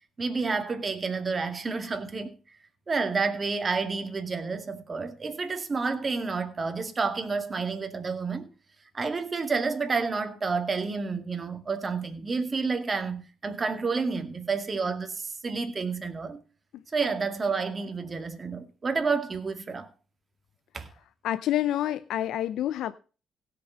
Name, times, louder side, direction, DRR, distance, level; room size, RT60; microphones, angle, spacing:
voice 1, 0.2-2.4 2.9-8.5 8.9-16.4 16.9-19.9 20.7-20.9, right 4 dB, 35° right, 2.1 m, -30 dB
voice 2, 21.2-22.9, left 12 dB, 80° left, 0.5 m, -27 dB
16.5 x 6.8 x 5.1 m
cardioid pair, 90°, 0 cm